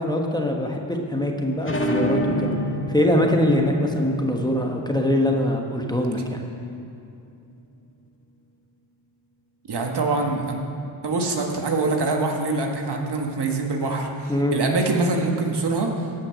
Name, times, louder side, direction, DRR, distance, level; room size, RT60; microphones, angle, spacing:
voice 1, 0.0-2.6 2.9-6.4 14.3-14.6, left 1 dB, 10° left, 1 dB, 1.3 m, -23 dB
sound 1, 1.6-6.9, equal, 25° left, 1.7 m, -29 dB
voice 2, 9.7-10.6 11.0-15.9, right 3 dB, 55° right, 2 dB, 1.7 m, -24 dB
16.5 x 5.9 x 6.5 m, 2.6 s
cardioid pair, 65°, 48 cm